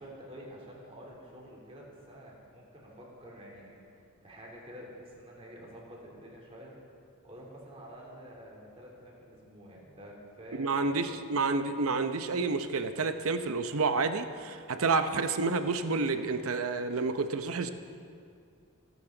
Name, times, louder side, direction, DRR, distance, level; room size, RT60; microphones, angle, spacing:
voice 1, 0.0-6.7 7.2-11.2, equal, 25° right, -4 dB, 3.3 m, -49 dB
voice 2, 10.6-17.7, right 4 dB, 65° right, 9 dB, 0.8 m, -29 dB
27.5 x 9.3 x 3.9 m, 2.4 s
head